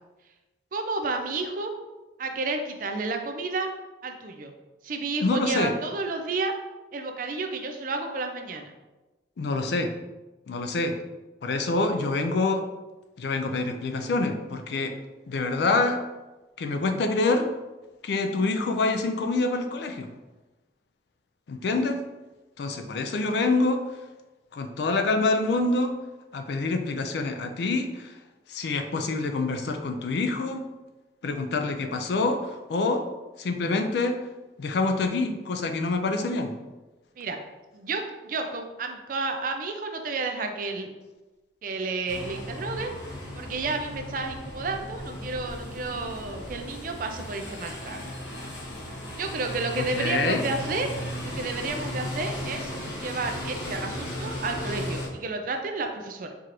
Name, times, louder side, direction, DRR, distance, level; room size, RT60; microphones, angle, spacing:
voice 1, 0.7-1.7 2.2-3.7 4.0-4.5 4.8-6.5 6.9-8.7 37.2-37.4 37.7-40.9 41.6-42.9 43.4-48.0 49.2-50.9 51.2-52.7 53.0-56.3, right 3 dB, 50° right, 4 dB, 0.4 m, -31 dB
voice 2, 5.2-5.7 9.4-9.9 10.5-11.0 11.4-12.6 13.2-14.9 15.3-16.0 16.6-17.5 18.0-20.1 21.5-22.0 22.6-23.8 24.5-25.9 26.3-28.1 28.5-30.7 31.2-33.1 33.4-34.2 34.6-36.6 49.7-50.4, left 3 dB, 65° left, 7 dB, 0.4 m, -26 dB
sound 1, 42.1-55.1, equal, 85° left, 0.9 m, -36 dB
4.6 x 2.5 x 2.9 m, 1.1 s
head